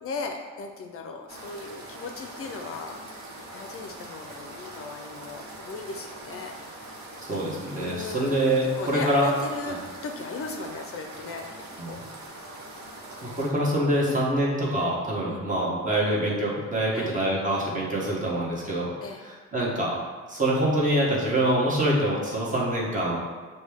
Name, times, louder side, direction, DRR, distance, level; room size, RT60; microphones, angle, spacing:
voice 1, 0.0-3.0 3.5-6.5 7.8-11.5 11.9-12.0 14.0-14.2 15.3-15.5 16.9-17.1 19.0-19.3, left 3 dB, 50° left, 3 dB, 0.5 m, -37 dB
sound 1, 1.3-13.5, right 1 dB, 65° right, 1.0 m, -42 dB
voice 2, 7.3-9.3 9.6-9.7 11.8-12.0 13.2-18.9 19.2-20.0 20.3-23.2, right 1 dB, 25° right, -5 dB, 1.2 m, -25 dB
6.2 x 2.2 x 3.5 m, 1.4 s
cardioid pair, 90°, 30 cm